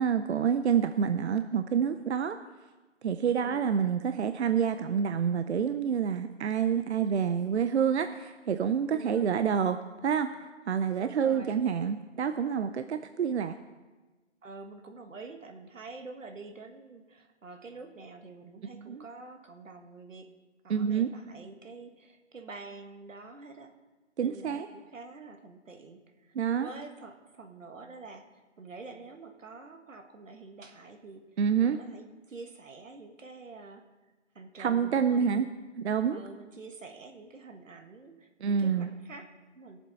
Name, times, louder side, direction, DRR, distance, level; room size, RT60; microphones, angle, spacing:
voice 1, 0.0-2.4 3.0-10.3 10.7-13.5 18.7-19.0 20.7-21.1 24.2-24.7 26.4-26.7 31.4-31.8 34.6-35.5 35.8-36.2 38.4-38.9, right 7 dB, 60° right, 9 dB, 0.6 m, -28 dB
voice 2, 3.2-3.6 8.9-9.3 11.0-11.6 14.4-20.3 20.6-23.7 24.2-33.9 34.4-35.5 36.1-39.8, right 3 dB, 90° right, 6 dB, 1.6 m, -47 dB
20.5 x 7.3 x 4.1 m, 1.2 s
hypercardioid pair, 160°, 37 cm